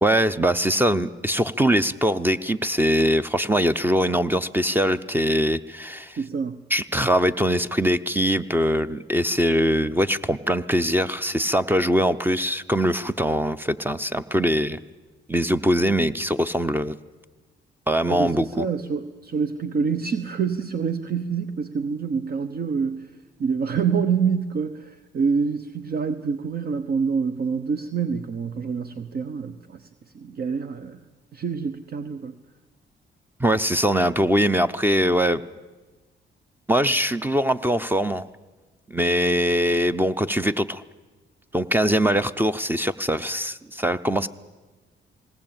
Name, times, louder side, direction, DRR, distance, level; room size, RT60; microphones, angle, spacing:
voice 1, 0.0-6.2 6.7-14.8 15.3-17.0 17.9-18.7 33.4-35.4 36.7-38.2 38.9-40.8 41.5-44.3, equal, 10° right, 12 dB, 0.7 m, -22 dB
voice 2, 6.2-6.6 18.1-23.1 23.4-29.9 30.1-31.0 31.3-32.4, right 6 dB, 50° right, 10 dB, 1.0 m, -26 dB
19.5 x 18.0 x 8.9 m, 1.3 s
cardioid pair, 90°, 20 cm